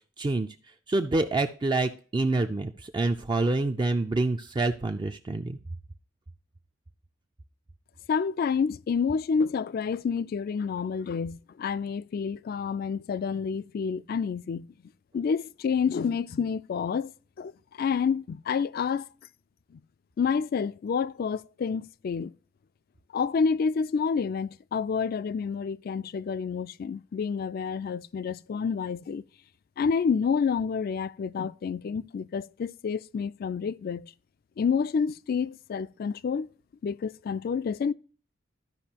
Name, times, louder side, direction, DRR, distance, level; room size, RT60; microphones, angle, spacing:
voice 1, 0.2-0.5 0.9-5.6, right 2 dB, 25° right, 0.4 m, -27 dB
voice 2, 8.1-14.7 15.1-17.1 17.4-17.5 17.8-19.1 20.2-22.3 23.1-29.2 29.8-34.1 34.6-36.5 36.8-37.9, left 6 dB, 50° left, 0.3 m, -28 dB
13.5 x 5.2 x 2.8 m
head